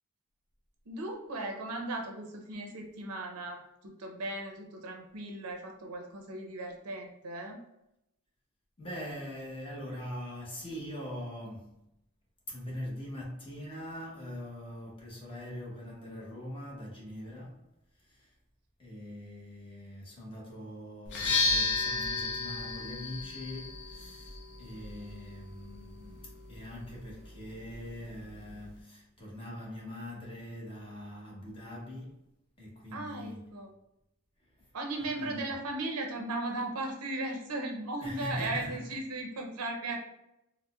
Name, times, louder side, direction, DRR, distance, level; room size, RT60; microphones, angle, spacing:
voice 1, 0.9-7.6 32.9-33.7 34.7-40.0, right 2 dB, 80° right, 0.7 m, -37 dB
voice 2, 8.8-11.8 12.5-17.7 18.0-18.3 18.8-32.2 32.6-33.7 34.5-34.7 35.2-35.5 38.0-38.8, left 1 dB, 25° left, 1.0 m, -42 dB
sound 1, 21.0-28.8, left 3 dB, 55° left, 0.6 m, -35 dB
4.1 x 2.1 x 2.3 m
head